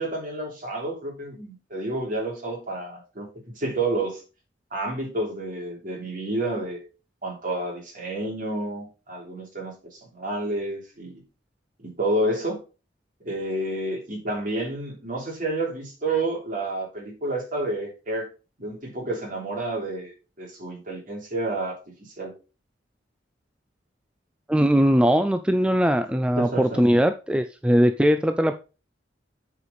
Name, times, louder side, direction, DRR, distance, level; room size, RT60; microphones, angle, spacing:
voice 1, 0.0-4.2 4.7-6.9 7.2-11.2 11.8-12.6 13.2-18.3 18.6-20.1 20.4-22.3 26.4-26.8, right 2 dB, 50° right, 3.3 m, -30 dB
voice 2, 24.5-28.5, equal, 5° right, 0.4 m, -20 dB
8.3 x 4.9 x 4.1 m
head